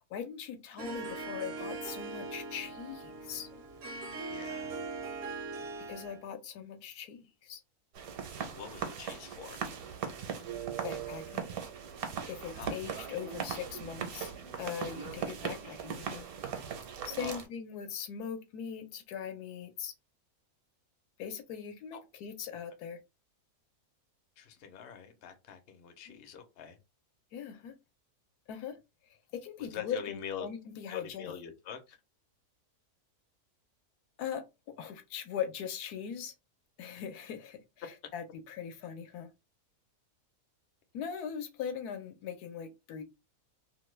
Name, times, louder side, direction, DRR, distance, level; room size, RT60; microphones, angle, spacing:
voice 1, 0.0-3.5 5.9-7.6 10.8-11.4 12.3-14.3 14.6-16.3 16.5-16.6 17.0-19.9 21.2-23.0 26.1-26.2 27.3-27.7 28.5-28.8 29.3-31.4 34.2-34.4 34.8-36.3 36.8-37.6 38.1-39.3 40.9-43.0, left 8 dB, 85° left, 1.2 m, -40 dB
Harp, 0.8-6.2, right 3 dB, 55° right, 0.7 m, -41 dB
voice 2, 4.3-4.8 8.4-9.6 12.6-12.7 17.2-17.4 21.9-22.0 24.4-26.8 29.6-30.5 30.9-32.0, left 7 dB, 55° left, 0.7 m, -44 dB
sound 1, 8.0-17.5, right 7 dB, 70° right, 1.1 m, -39 dB
2.9 x 2.2 x 3.1 m
omnidirectional pair, 1.6 m